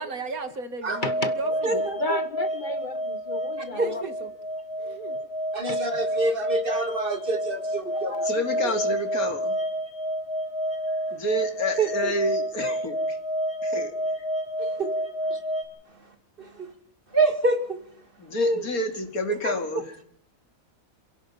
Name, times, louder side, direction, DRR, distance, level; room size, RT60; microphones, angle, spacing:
voice 1, 0.0-1.7 3.7-4.3 4.8-5.2, right 3 dB, 80° right, 2.4 m, -35 dB
sound 1, 0.9-15.6, equal, 5° right, 4.8 m, -29 dB
voice 2, 1.0-1.3 2.0-4.0 5.7-5.8 7.9-8.3 11.8-11.9 16.4-16.6, left 2 dB, 35° left, 1.6 m, -33 dB
voice 3, 1.6-2.2 3.8-3.9 4.8-4.9 5.5-8.2 8.6-8.9 11.8-12.1 14.6-14.9 15.3-15.4 16.4-16.7 17.1-17.8 18.3-18.7 19.4-19.5, right 2 dB, 40° right, 2.3 m, -26 dB
voice 4, 8.2-9.5 11.1-13.2 13.6-13.9 18.2-19.8, left 1 dB, 90° left, 3.0 m, -29 dB
27.5 x 17.0 x 5.6 m
omnidirectional pair, 1.5 m